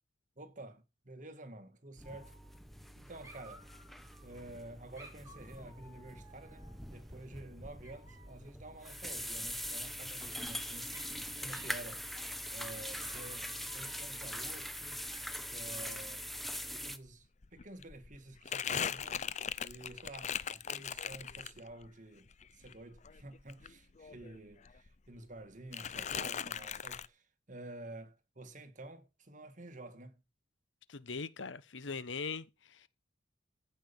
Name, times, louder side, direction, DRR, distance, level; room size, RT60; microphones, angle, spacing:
voice 1, 0.4-2.4 3.0-3.7 4.2-10.9 11.4-12.1 12.5-15.0 15.5-16.3 16.7-19.2 19.6-30.2, right 2 dB, 40° right, 1.8 m, -50 dB
sound 1, 2.0-17.0, equal, ahead, 1.0 m, -43 dB
Dog, 2.0-2.9 3.2-4.4 5.0-7.0 7.8-8.5 9.9-10.5 10.9-11.2 11.5-11.8 12.1-12.6 12.9-14.4 15.1-16.3, right 1 dB, 15° right, 4.1 m, -58 dB
Crumpling crinkling, 17.1-17.2 17.4-21.9 22.3-24.4 24.7-25.4 25.7-27.1, left 8 dB, 40° left, 0.6 m, -39 dB
voice 2, 30.9-32.9, left 4 dB, 80° left, 1.0 m, -41 dB
15.5 x 5.7 x 7.0 m
head